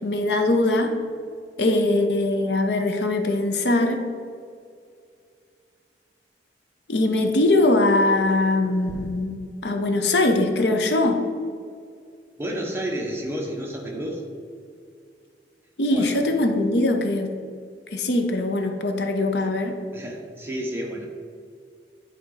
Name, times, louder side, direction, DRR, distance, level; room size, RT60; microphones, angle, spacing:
voice 1, 0.0-0.9 1.6-4.0 6.9-9.4 9.6-11.2 15.8-17.3 17.9-19.7, left 2 dB, 70° left, 5 dB, 0.7 m, -21 dB
voice 2, 12.4-14.2 15.9-16.2 19.9-21.1, right 1 dB, 15° right, -2 dB, 1.1 m, -30 dB
9.5 x 4.1 x 4.0 m, 2.2 s
head